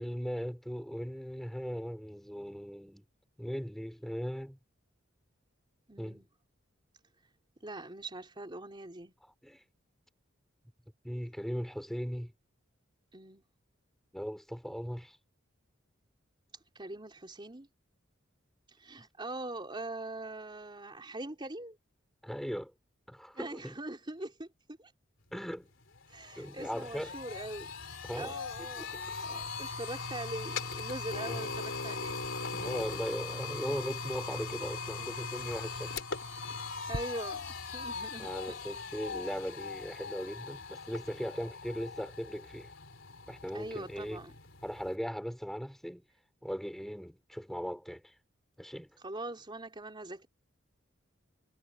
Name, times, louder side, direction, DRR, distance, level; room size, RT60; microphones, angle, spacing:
voice 1, 0.0-3.0 3.4-4.6 6.0-6.2 9.4-9.6 11.0-12.3 14.1-15.2 22.2-22.7 23.1-23.7 25.3-25.7 26.4-27.2 28.0-28.4 28.8-29.0 31.2-31.4 32.5-35.9 38.2-42.7 43.3-44.2 44.6-46.0 46.4-48.1 48.6-48.9, equal, ahead, 4.9 m, -38 dB
voice 2, 5.9-6.3 7.6-9.1 13.1-13.4 16.7-17.7 18.7-21.8 23.3-24.9 26.1-27.7 28.1-32.4 36.9-38.3 43.5-44.3 49.0-50.3, right 2 dB, 25° right, 3.8 m, -42 dB
sound 1, 25.5-25.6 25.9-45.0, left 4 dB, 70° left, 4.1 m, -40 dB
head